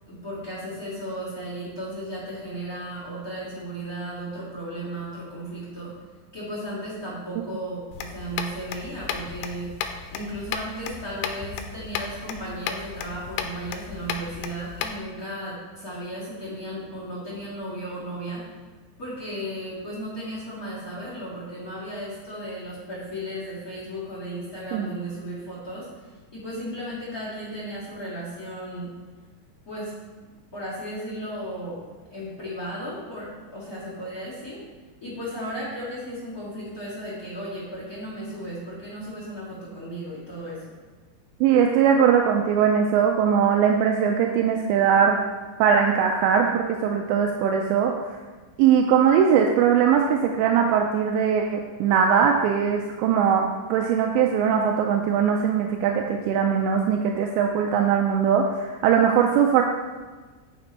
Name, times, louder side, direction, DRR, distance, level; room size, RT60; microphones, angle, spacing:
voice 1, 0.1-5.9 6.3-9.7 10.1-18.4 19.0-28.9 29.6-29.9 30.5-31.8 32.1-34.6 35.0-40.6, right 1 dB, 45° left, -8 dB, 1.1 m, -35 dB
sound 1, 7.9-15.0, left 7 dB, 85° left, 2.9 m, -34 dB
voice 2, 41.4-45.2 45.6-47.9 48.6-59.6, right 7 dB, 85° right, 2 dB, 2.6 m, -20 dB
9.6 x 5.9 x 4.2 m, 1.4 s
omnidirectional pair, 5.5 m